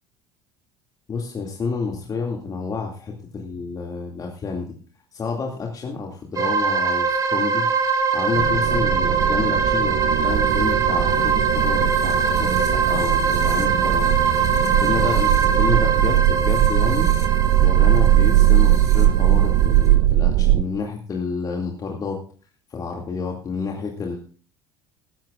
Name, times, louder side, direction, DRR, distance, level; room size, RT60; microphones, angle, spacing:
voice 1, 1.1-4.7 5.1-7.7 8.1-14.1 14.7-17.1 17.6-22.2 22.7-24.2, left 4 dB, 30° left, 0 dB, 2.4 m, -29 dB
sound 1, 6.4-19.9, right 5 dB, 30° right, 3.0 m, -23 dB
sound 2, 8.3-20.6, right 14 dB, 50° right, 0.6 m, -19 dB
20.0 x 12.0 x 2.5 m, 0.43 s
figure-of-eight pair, 65°, 12 cm